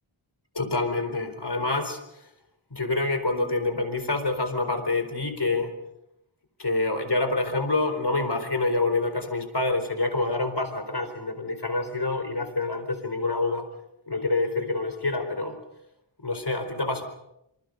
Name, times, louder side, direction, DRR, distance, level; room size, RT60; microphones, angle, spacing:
voice 1, 0.5-2.0 2.7-5.7 6.6-13.6 14.1-15.6 16.2-17.0, left 2 dB, 55° left, 8 dB, 4.3 m, -27 dB
26.5 x 26.5 x 5.4 m, 0.81 s
wide cardioid pair, 40°, 49 cm